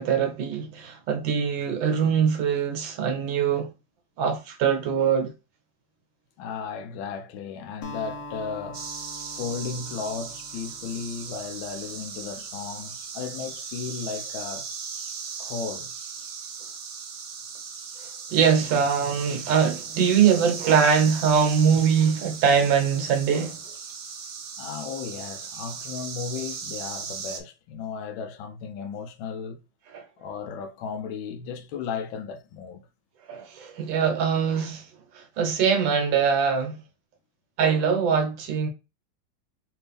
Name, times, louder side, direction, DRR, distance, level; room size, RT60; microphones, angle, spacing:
voice 1, 0.0-3.7 4.2-5.3 18.3-23.6 29.9-30.0 33.3-34.9 35.1-36.7 37.6-38.7, right 7 dB, 70° right, 1.5 m, -22 dB
voice 2, 6.4-8.9 9.3-15.1 15.4-15.9 24.6-29.6 30.2-32.9, left 6 dB, 80° left, 1.3 m, -35 dB
Acoustic guitar, 7.8-12.3, left 2 dB, 60° left, 1.0 m, -44 dB
sound 1, 8.7-27.4, right 6 dB, 90° right, 0.6 m, -38 dB
3.3 x 3.1 x 3.3 m
omnidirectional pair, 2.2 m